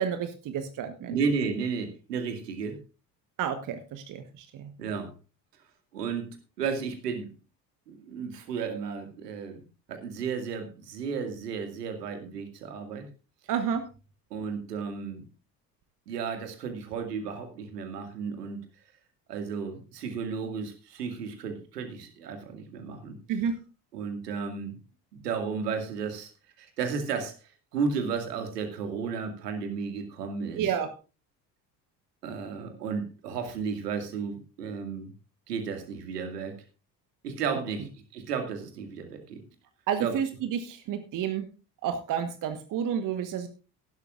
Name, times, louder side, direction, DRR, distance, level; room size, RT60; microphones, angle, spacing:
voice 1, 0.0-1.2 3.4-4.7 13.5-13.8 23.3-23.6 30.6-30.9 39.9-41.5 41.8-43.5, right 8 dB, 40° right, 9 dB, 1.4 m, -30 dB
voice 2, 1.1-2.8 4.8-5.1 5.9-7.3 7.9-13.1 14.3-15.2 16.1-18.6 19.3-23.2 23.9-24.8 25.1-26.3 26.6-30.7 32.2-35.1 35.5-36.6 37.2-39.4 40.0-40.1, right 5 dB, 70° right, 6 dB, 2.3 m, -33 dB
16.5 x 12.0 x 2.5 m, 0.32 s
figure-of-eight pair, 60°, 49 cm